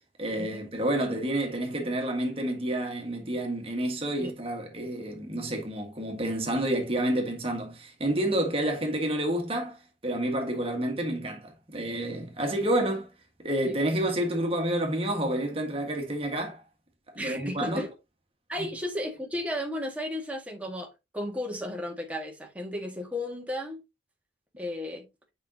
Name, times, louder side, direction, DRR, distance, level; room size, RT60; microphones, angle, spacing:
voice 1, 0.2-13.1 13.4-16.6 17.1-17.8 18.6-18.7, right 1 dB, 30° right, 1.6 m, -29 dB
voice 2, 17.2-17.9 18.5-20.9 21.1-23.8 24.6-25.1, left 1 dB, 10° right, 1.7 m, -34 dB
7.3 x 5.3 x 2.8 m
head